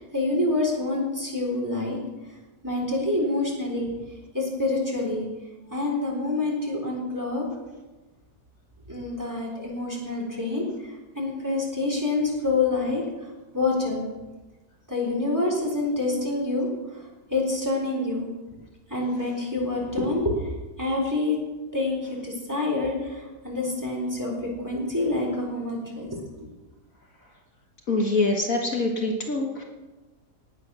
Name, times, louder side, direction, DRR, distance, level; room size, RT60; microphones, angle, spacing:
voice 1, 0.0-2.0 2.6-3.9 4.3-5.3 5.7-7.5 8.9-13.0 13.5-14.0 14.9-16.7 17.3-18.3 18.9-20.3 20.8-21.4 21.7-26.2, left 2 dB, 10° right, -2 dB, 3.8 m, -27 dB
voice 2, 27.9-29.6, left 2 dB, 55° left, 1 dB, 1.9 m, -24 dB
18.5 x 8.8 x 6.3 m, 1.2 s
omnidirectional pair, 1.8 m